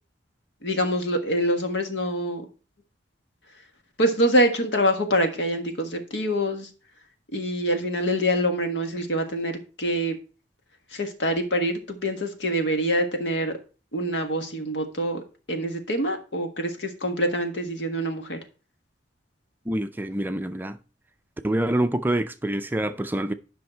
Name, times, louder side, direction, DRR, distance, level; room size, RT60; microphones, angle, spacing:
voice 1, 0.6-2.4 4.0-6.7 7.3-10.2 10.9-13.5 13.9-18.4, equal, 75° left, 1.7 m, -25 dB
voice 2, 19.7-20.8 21.4-23.3, right 1 dB, 10° right, 0.4 m, -26 dB
10.5 x 5.7 x 4.5 m
head